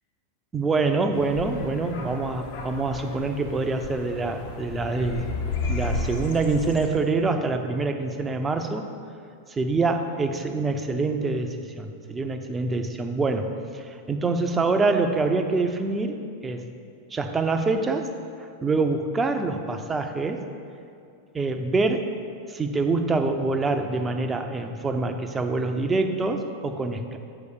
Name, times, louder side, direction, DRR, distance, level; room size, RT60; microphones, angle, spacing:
voice 1, 0.5-5.3 5.7-8.9 9.5-16.2 16.4-16.7 17.1-18.1 18.6-20.4 21.3-22.1 22.5-27.2, right 3 dB, 15° right, 5 dB, 0.6 m, -25 dB
sound 1, 1.1-6.9, left 3 dB, 50° left, 0.9 m, -33 dB
6.9 x 4.9 x 6.4 m, 2.5 s
figure-of-eight pair, 90°, 0 cm